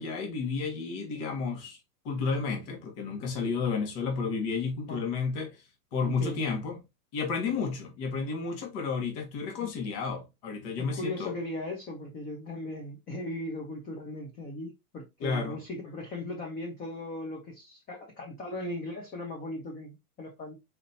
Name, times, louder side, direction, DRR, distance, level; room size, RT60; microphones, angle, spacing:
voice 1, 0.0-1.8 2.0-5.6 5.9-6.8 7.1-11.3 15.2-15.6, left 5 dB, 45° left, 1.7 m, -32 dB
voice 2, 6.0-6.4 9.6-9.7 10.8-20.6, left 1 dB, 20° left, 0.9 m, -38 dB
4.3 x 3.7 x 2.7 m
hypercardioid pair, 135°, 46 cm